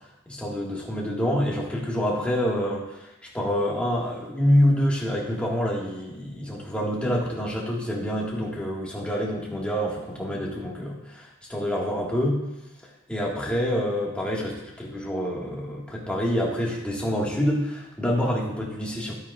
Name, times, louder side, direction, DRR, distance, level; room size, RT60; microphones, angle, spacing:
voice 1, 0.3-2.8 3.3-12.4 13.1-19.1, equal, 5° left, -4 dB, 1.5 m, -26 dB
12.0 x 8.8 x 2.3 m, 0.97 s
head